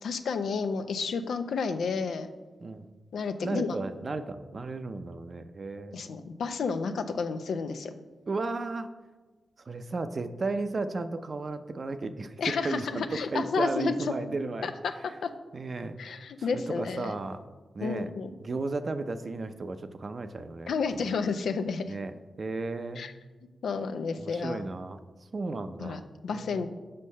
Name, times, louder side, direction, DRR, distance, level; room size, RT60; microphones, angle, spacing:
voice 1, 0.0-2.3 3.1-3.8 5.9-7.9 12.4-13.9 14.6-15.3 16.0-17.1 17.8-18.3 20.7-21.9 23.0-23.1 23.6-24.6 25.8-26.7, left 5 dB, 85° left, 9 dB, 0.5 m, -31 dB
voice 2, 3.4-6.1 8.3-8.9 9.7-14.7 15.5-17.4 17.7-18.1 18.4-21.1 21.9-23.1 24.2-25.0 25.3-26.0 26.3-26.7, right 3 dB, 55° right, 9 dB, 0.6 m, -34 dB
6.6 x 5.3 x 5.5 m, 1.3 s
cardioid pair, 45°, 0 cm